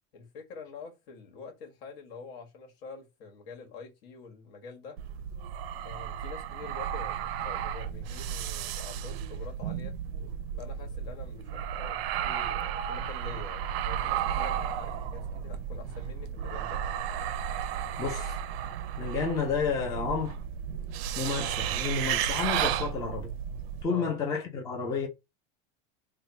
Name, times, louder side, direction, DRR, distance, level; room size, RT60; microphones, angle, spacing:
voice 1, 0.1-5.0 5.8-9.9 10.6-16.8 22.7-22.9 23.9-24.1, left 5 dB, 75° left, 1.5 m, -46 dB
sound 1, 5.0-23.8, right 9 dB, 90° right, 0.5 m, -33 dB
voice 2, 17.7-18.4 19.0-20.4 21.2-23.3 23.8-25.1, left 5 dB, 10° left, 0.4 m, -31 dB
3.4 x 2.2 x 4.3 m
cardioid pair, 175°, 30 cm